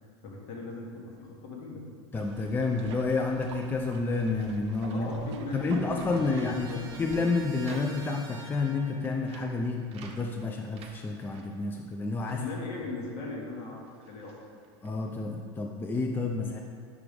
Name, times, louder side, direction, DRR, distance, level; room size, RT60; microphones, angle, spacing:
voice 1, 0.2-1.8 4.9-7.1 12.3-14.4, left 3 dB, 55° left, -2 dB, 1.4 m, -39 dB
voice 2, 2.1-5.1 5.5-12.4 14.8-16.6, left 3 dB, 15° left, 2 dB, 0.4 m, -30 dB
sound 1, 2.1-7.2, right 6 dB, 85° right, 0.5 m, -46 dB
Trumpet, 4.7-9.1, right 2 dB, 25° right, 1.2 m, -49 dB
sound 2, 6.1-13.5 13.8-15.2, right 5 dB, 45° right, 0.7 m, -52 dB
4.9 x 4.6 x 5.1 m, 2.2 s
supercardioid pair, 105°, 14 cm